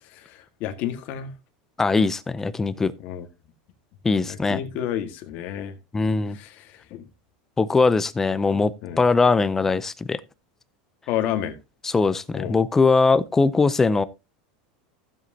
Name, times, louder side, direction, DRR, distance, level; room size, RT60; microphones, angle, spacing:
voice 1, 0.1-1.3 3.0-3.3 4.3-5.7 6.3-7.1 8.8-9.0 11.1-11.6 12.3-12.6, left 10 dB, 40° left, 1.7 m, -30 dB
voice 2, 1.8-2.9 4.0-4.6 5.9-6.4 7.6-10.2 11.8-14.0, left 4 dB, 10° left, 0.5 m, -21 dB
15.5 x 7.6 x 2.8 m
supercardioid pair, 165°, 4 cm